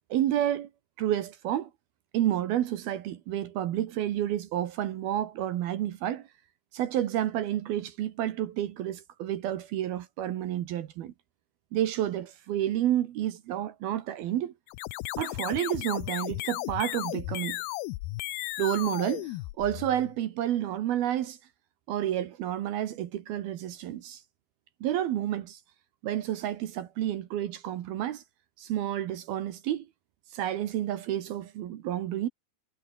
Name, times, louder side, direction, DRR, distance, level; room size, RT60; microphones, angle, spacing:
voice 1, 0.1-0.7 1.0-1.7 2.1-6.3 6.7-11.1 11.7-14.5 15.2-17.6 18.6-21.4 21.9-24.2 24.8-25.6 26.0-28.2 28.6-29.9 30.3-32.3, right 12 dB, 70° right, 3.0 m, -30 dB
sound 1, 14.7-20.2, left 18 dB, 80° left, 2.4 m, -35 dB
omnidirectional pair, 5.0 m